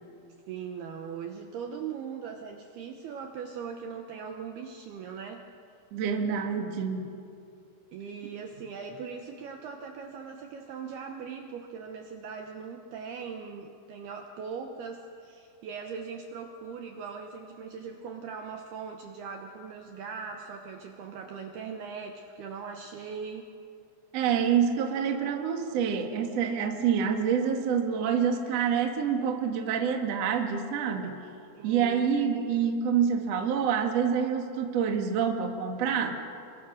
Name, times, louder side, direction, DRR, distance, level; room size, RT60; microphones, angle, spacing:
voice 1, 0.5-5.5 7.9-23.5 31.5-32.1, right 6 dB, 70° right, 4 dB, 2.5 m, -40 dB
voice 2, 5.9-7.1 24.1-31.2 31.6-36.1, right 7 dB, 55° right, 4 dB, 1.8 m, -27 dB
27.5 x 23.0 x 6.4 m, 2.5 s
omnidirectional pair, 5.7 m